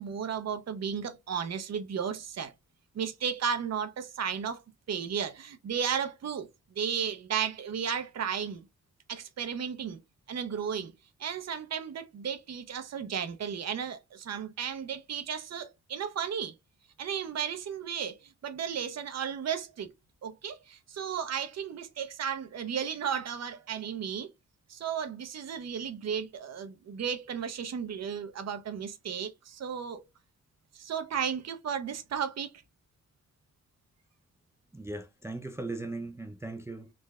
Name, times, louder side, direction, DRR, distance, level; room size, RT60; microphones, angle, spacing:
voice 1, 0.0-2.5 2.9-4.6 4.9-8.6 9.1-10.0 10.3-10.9 11.2-16.5 17.0-19.9 20.2-24.3 24.7-30.0 30.7-32.5, right 7 dB, 60° right, 0.7 m, -34 dB
voice 2, 34.7-36.9, right 2 dB, 10° right, 0.4 m, -38 dB
3.9 x 3.1 x 2.3 m
wide cardioid pair, 110°, 29 cm